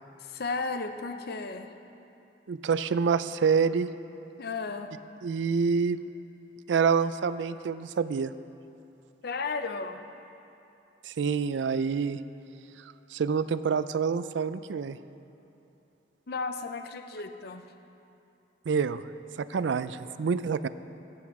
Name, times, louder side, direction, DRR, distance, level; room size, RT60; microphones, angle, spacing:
voice 1, 0.2-1.7 4.4-4.9 9.2-10.0 16.3-17.6, left 4 dB, 60° left, 8 dB, 0.6 m, -34 dB
voice 2, 2.5-3.9 5.2-6.1 6.7-8.3 11.0-12.2 13.1-15.0 18.7-19.0 19.4-20.7, right 5 dB, 75° right, 14 dB, 0.4 m, -27 dB
16.0 x 8.3 x 4.8 m, 2.8 s
head